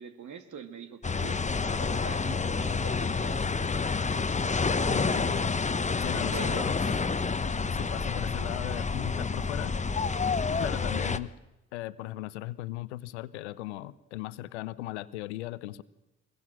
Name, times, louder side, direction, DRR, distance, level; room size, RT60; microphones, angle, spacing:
voice 1, 0.0-1.4 1.8-3.5 6.3-6.7, right 6 dB, 60° right, 8 dB, 2.2 m, -43 dB
sound 1, 1.0-11.2, left 4 dB, 20° left, 1.0 m, -29 dB
voice 2, 4.9-5.4 6.0-6.7 7.7-9.8 10.5-11.3 11.7-15.8, left 16 dB, 85° left, 17 dB, 0.7 m, -37 dB
23.5 x 21.5 x 6.2 m, 0.98 s
hypercardioid pair, 45°, 33 cm